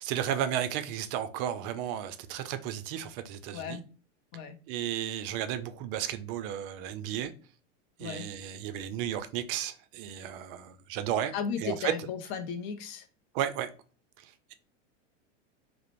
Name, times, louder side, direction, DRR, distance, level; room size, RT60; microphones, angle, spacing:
voice 1, 0.0-3.8 4.7-7.3 8.0-11.3 11.6-11.9 13.3-13.7 14.2-14.5, right 10 dB, 50° right, 0.4 m, -33 dB
voice 2, 11.3-13.1, left 6 dB, 45° left, 0.4 m, -35 dB
2.4 x 2.0 x 3.0 m
hypercardioid pair, 110°, 38 cm